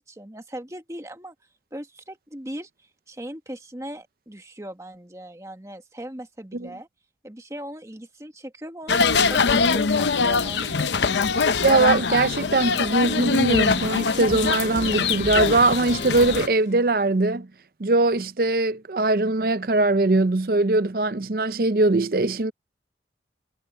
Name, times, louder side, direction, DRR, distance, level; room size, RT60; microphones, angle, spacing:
voice 1, 0.0-1.3 1.7-6.9 7.2-11.3, right 1 dB, 15° right, 1.5 m, -39 dB
sound 1, 8.9-16.5, left 5 dB, 90° left, 0.7 m, -23 dB
voice 2, 11.6-17.5 17.8-22.5, right 2 dB, 55° right, 0.6 m, -21 dB
sound 2, 13.1-16.9, left 2 dB, 45° left, 3.1 m, -37 dB
head